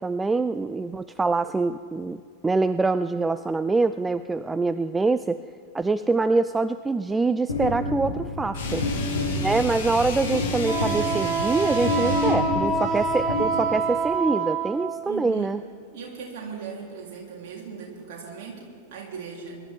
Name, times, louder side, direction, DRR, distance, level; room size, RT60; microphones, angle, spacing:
voice 1, 0.0-5.4 5.7-8.8 9.4-15.6, right 3 dB, 10° right, 13 dB, 0.3 m, -25 dB
sound 1, 7.5-14.1, left 2 dB, 80° left, 2.0 m, -29 dB
sound 2, 8.5-12.5, left 4 dB, 60° left, 2.7 m, -34 dB
voice 2, 8.6-9.5 12.7-12.9 13.2-13.3 15.1-15.5 15.9-19.6, right 5 dB, 45° right, -3 dB, 3.6 m, -39 dB
Wind instrument woodwind instrument, 10.6-15.1, right 4 dB, 30° right, 1.4 m, -26 dB
23.5 x 12.0 x 3.7 m, 2.2 s
figure-of-eight pair, 90°, 0 cm